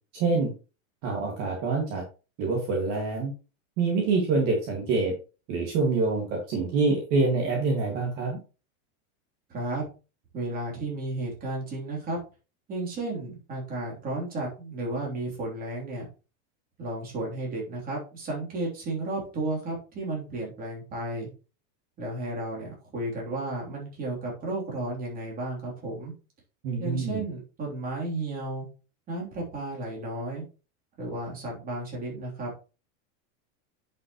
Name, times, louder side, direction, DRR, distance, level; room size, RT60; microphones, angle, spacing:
voice 1, 0.1-0.5 1.0-2.0 2.4-3.3 3.8-5.1 5.5-8.4 26.6-27.2, right 3 dB, 40° right, -1 dB, 2.2 m, -26 dB
voice 2, 9.5-9.8 10.3-12.2 12.7-16.1 16.8-21.3 22.0-26.1 26.8-28.7 29.1-30.4 31.0-32.6, right 2 dB, 20° right, -3 dB, 3.4 m, -33 dB
10.0 x 5.7 x 3.1 m, 0.33 s
supercardioid pair, 170°, 42 cm